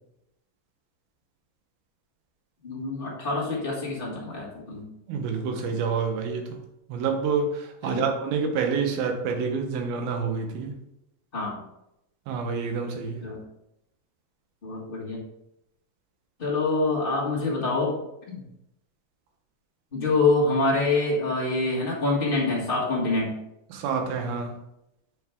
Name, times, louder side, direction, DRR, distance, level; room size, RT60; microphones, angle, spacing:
voice 1, 2.6-4.9 7.8-8.1 11.3-11.6 13.2-13.4 14.6-15.2 16.4-18.0 18.3-18.4 19.9-23.4, left 3 dB, 40° left, 0.7 m, -26 dB
voice 2, 5.1-6.6 6.9-10.8 12.3-13.3 23.7-24.6, right 5 dB, 80° right, 2.8 m, -28 dB
7.5 x 5.9 x 3.5 m
omnidirectional pair, 4.3 m